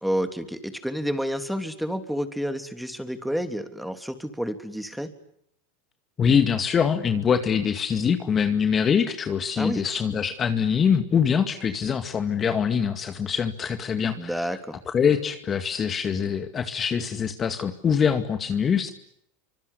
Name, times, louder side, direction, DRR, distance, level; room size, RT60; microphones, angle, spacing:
voice 1, 0.0-5.1 9.6-9.8 14.2-14.8, equal, ahead, 8 dB, 3.2 m, -29 dB
voice 2, 6.2-14.3 14.9-18.9, left 7 dB, 30° left, 8 dB, 2.2 m, -24 dB
27.0 x 25.5 x 8.4 m, 0.72 s
hypercardioid pair, 90°, 0 cm